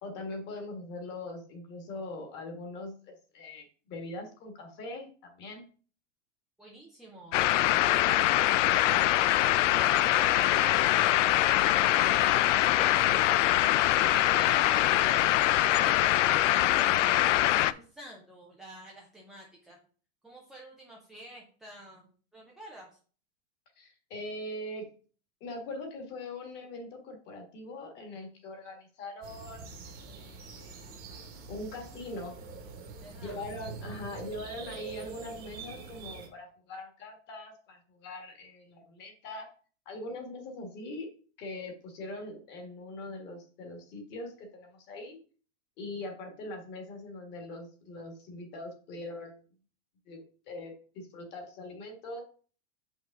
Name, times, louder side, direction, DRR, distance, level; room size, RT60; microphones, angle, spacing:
voice 1, 0.0-5.6 23.8-24.9 25.4-29.7 30.0-30.8 31.5-32.4 33.2-39.5 39.8-41.1 41.4-45.2 45.8-49.4 50.1-52.2, left 2 dB, 30° left, 3 dB, 1.6 m, -42 dB
voice 2, 6.6-7.4 8.8-9.4 9.8-13.5 14.1-15.3 15.8-17.2 17.6-19.8 20.2-22.9 33.0-33.4, right 1 dB, ahead, -3 dB, 0.4 m, -48 dB
sound 1, 7.3-17.7, left 14 dB, 85° left, 0.5 m, -23 dB
sound 2, 29.2-36.3, right 4 dB, 25° right, 1.2 m, -45 dB
7.2 x 5.4 x 3.6 m, 0.41 s
supercardioid pair, 165°, 36 cm